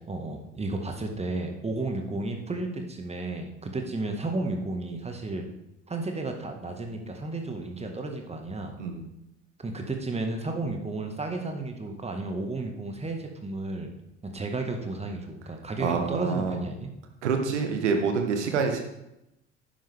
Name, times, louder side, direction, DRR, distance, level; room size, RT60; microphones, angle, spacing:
voice 1, 0.1-5.4 5.9-8.7 9.6-13.9 14.2-16.9, right 2 dB, 20° right, 4 dB, 1.8 m, -33 dB
voice 2, 15.8-16.6 17.2-18.8, right 5 dB, 75° right, 5 dB, 1.6 m, -27 dB
11.0 x 9.7 x 3.6 m, 0.88 s
figure-of-eight pair, 60°, 35 cm